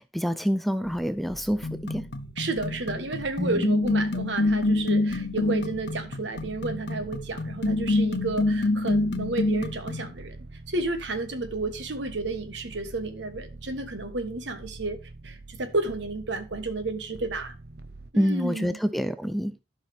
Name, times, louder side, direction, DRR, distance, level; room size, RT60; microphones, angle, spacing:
voice 1, 0.0-2.1 3.4-3.7 18.1-19.5, equal, ahead, 0.4 m, -27 dB
sound 1, 0.8-18.1, right 2 dB, 60° right, 0.7 m, -46 dB
sound 2, 1.6-10.1, left 2 dB, 60° left, 0.7 m, -27 dB
voice 2, 2.4-15.0 15.2-17.5 18.1-18.8, right 2 dB, 75° right, 1.3 m, -31 dB
12.0 x 5.7 x 3.4 m
head